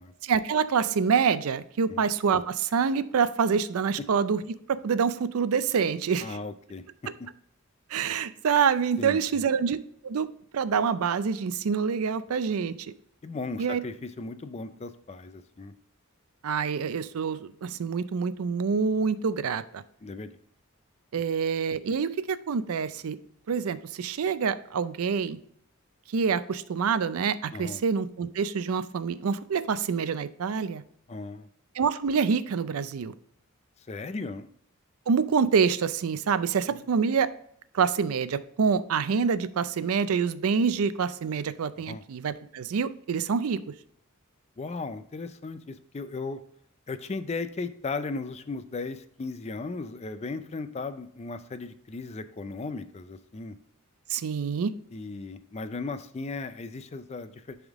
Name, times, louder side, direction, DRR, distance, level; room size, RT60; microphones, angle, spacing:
voice 1, 0.2-4.4 4.7-6.4 7.9-9.8 10.0-10.3 10.5-12.9 13.6-13.8 16.4-19.8 21.1-23.2 23.5-25.4 26.1-30.8 31.8-33.1 35.1-37.3 37.7-43.6 54.1-54.7, right 6 dB, 85° right, 14 dB, 0.4 m, -26 dB
voice 2, 6.2-6.8 9.0-9.4 13.2-15.7 20.0-20.4 27.5-27.8 31.1-31.5 33.9-34.5 36.7-36.8 41.9-42.0 44.6-46.4 46.9-53.5 54.9-57.6, left 3 dB, 30° left, 11 dB, 0.4 m, -36 dB
10.5 x 3.6 x 3.6 m, 0.68 s
head